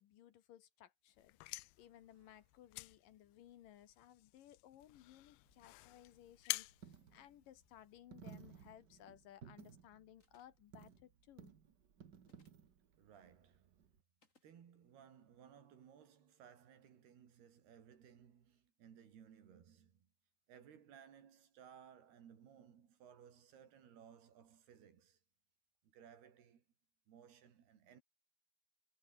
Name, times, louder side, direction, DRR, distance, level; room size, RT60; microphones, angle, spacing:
voice 1, 0.0-11.5, left 12 dB, 70° left, 2.7 m, -61 dB
sound 1, 1.2-8.0, left 23 dB, 85° left, 2.5 m, -49 dB
voice 2, 1.8-2.4 12.9-13.9 14.4-20.1 20.5-25.2 25.8-26.6 27.1-28.0, right 8 dB, 85° right, 5.1 m, -61 dB
Coin (dropping), 5.5-14.0, right 7 dB, 50° right, 1.2 m, -60 dB
sound 2, 10.2-10.7 12.2-12.7 14.2-14.5, left 3 dB, 20° left, 3.8 m, -74 dB
omnidirectional pair, 4.4 m